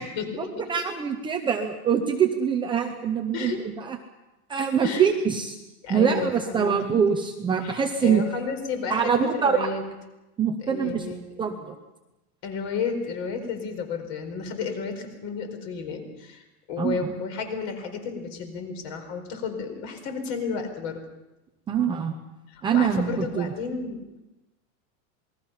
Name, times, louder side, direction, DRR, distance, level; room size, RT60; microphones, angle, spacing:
voice 1, 0.0-0.6 3.3-3.6 4.8-5.1 5.8-6.8 7.6-9.8 10.6-11.3 12.4-21.0 22.5-24.0, left 5 dB, 45° left, 6 dB, 4.6 m, -32 dB
voice 2, 0.7-4.0 4.5-5.6 5.9-8.2 8.9-9.7 10.4-11.0 11.4-11.7 16.8-17.1 21.7-22.2 22.6-23.5, right 7 dB, 10° right, 3 dB, 0.7 m, -24 dB
27.5 x 20.5 x 5.7 m, 1.0 s
supercardioid pair, 175°, 43 cm